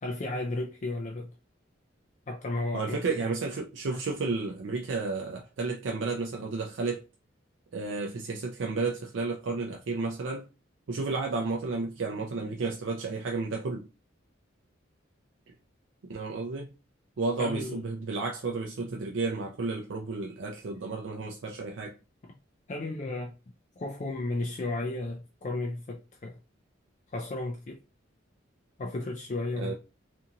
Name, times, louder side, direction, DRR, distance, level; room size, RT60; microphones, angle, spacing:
voice 1, 0.0-1.3 2.3-3.0 3.9-4.0 17.4-17.8 22.7-23.3 23.8-26.4 27.1-27.8 28.8-29.7, left 2 dB, 35° left, 0.4 m, -33 dB
voice 2, 2.7-7.0 7.7-10.5 10.9-13.9 16.1-16.7 17.2-21.9 29.6-29.7, right 3 dB, 70° right, 0.4 m, -32 dB
2.8 x 2.6 x 2.5 m
head